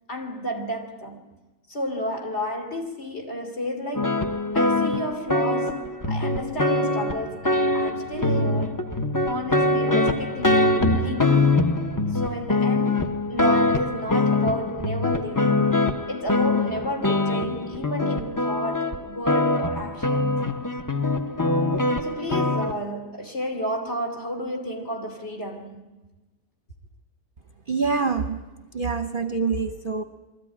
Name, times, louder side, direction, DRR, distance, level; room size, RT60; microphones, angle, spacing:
voice 1, 0.1-1.2 1.7-4.3 4.5-8.8 9.3-11.6 12.1-20.6 22.0-25.8, equal, 45° left, 3.3 m, -32 dB
sound 1, 3.9-22.7, left 2 dB, 15° left, 0.7 m, -23 dB
sound 2, 7.3-14.5, right 1 dB, 80° left, 3.2 m, -44 dB
voice 2, 27.7-28.4 28.7-30.0, right 4 dB, 40° right, 1.0 m, -25 dB
23.0 x 14.0 x 9.9 m
omnidirectional pair, 1.7 m